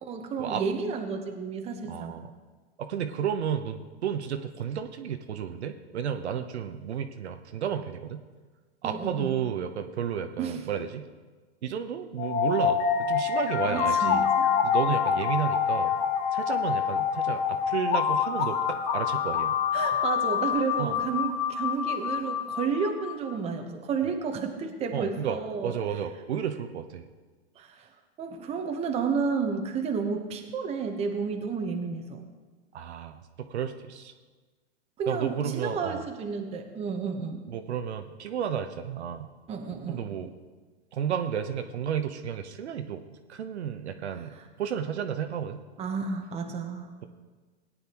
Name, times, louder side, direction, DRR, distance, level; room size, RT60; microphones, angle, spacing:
voice 1, 0.0-2.2 8.8-9.4 10.4-10.6 13.6-14.5 19.7-25.7 27.6-27.9 28.2-32.3 35.0-37.4 39.5-40.0 45.8-46.9, right 5 dB, 20° right, 4 dB, 1.0 m, -31 dB
voice 2, 1.8-2.3 2.8-8.2 8.8-11.1 11.6-14.3 14.6-15.9 16.3-19.6 20.8-20.9 24.9-27.1 32.7-34.1 35.1-36.0 37.5-39.3 39.9-40.3 40.9-43.0 43.3-45.6, right 8 dB, 75° right, 7 dB, 1.0 m, -32 dB
sound 1, 12.2-23.1, left 7 dB, 30° left, 0.9 m, -26 dB
17.0 x 9.8 x 3.0 m, 1.3 s
hypercardioid pair, 135°, 34 cm